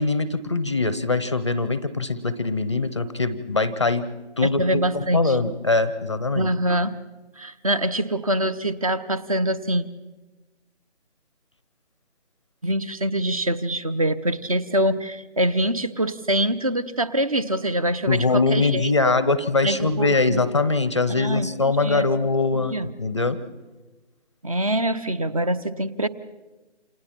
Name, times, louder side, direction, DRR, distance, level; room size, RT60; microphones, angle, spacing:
voice 1, 0.0-4.1 4.4-6.5 18.1-22.7 23.0-23.4, left 3 dB, 25° left, 15 dB, 0.7 m, -22 dB
voice 2, 4.4-5.4 6.3-7.0 7.4-9.8 12.6-19.1 19.6-20.4 21.1-22.9 24.4-26.1, right 1 dB, 30° right, 13 dB, 0.8 m, -25 dB
29.5 x 27.0 x 4.4 m, 1.2 s
figure-of-eight pair, 160°, 34 cm